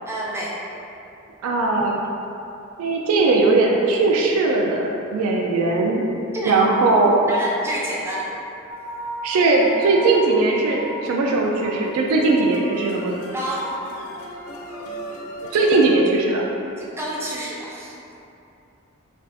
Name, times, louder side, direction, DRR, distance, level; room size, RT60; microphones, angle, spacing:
voice 1, 0.1-0.6 6.3-6.6 7.3-8.3 13.3-13.7 16.8-17.9, right 1 dB, 10° right, -5 dB, 0.4 m, -28 dB
voice 2, 1.4-2.0 2.8-6.0 6.4-7.3 9.2-13.1 15.5-16.5, right 3 dB, 85° right, 1 dB, 0.3 m, -19 dB
sound 1, 8.7-15.9, equal, 80° left, 0.4 m, -35 dB
3.3 x 2.3 x 2.6 m, 2.8 s
head